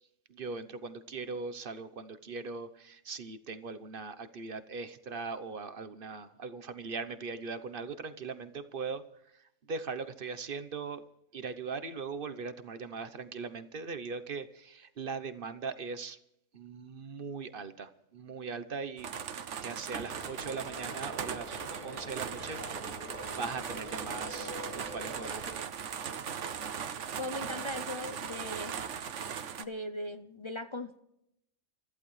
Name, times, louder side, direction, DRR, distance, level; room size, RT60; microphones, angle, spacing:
voice 1, 0.3-9.0 9.3-11.0 11.3-16.2 16.5-19.1 19.6-22.9 23.3-25.7, right 4 dB, 45° right, 1.0 m, -40 dB
sound 1, 19.0-29.6, right 7 dB, 60° right, 1.2 m, -39 dB
sound 2, 20.0-25.6, equal, 10° left, 5.5 m, -45 dB
voice 2, 27.2-28.9 29.6-31.0, left 1 dB, 35° left, 0.4 m, -39 dB
28.5 x 14.5 x 3.2 m
omnidirectional pair, 1.5 m